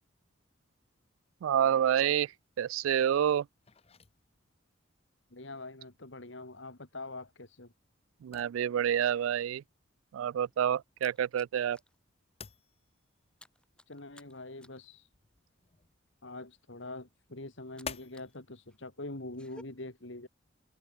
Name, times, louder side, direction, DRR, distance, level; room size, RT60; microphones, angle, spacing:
voice 1, 1.4-2.3 2.6-3.5 8.2-9.6 10.1-11.8, right 9 dB, 85° right, 0.3 m, -28 dB
sound 1, 2.3-18.4, left 6 dB, 30° left, 1.0 m, -53 dB
voice 2, 5.3-7.7 13.9-15.1 16.2-20.3, left 2 dB, 65° left, 2.5 m, -44 dB
sound 2, 10.4-12.0 12.3-12.5 12.8-18.4 18.7-19.6, left 1 dB, 5° left, 7.4 m, -58 dB
head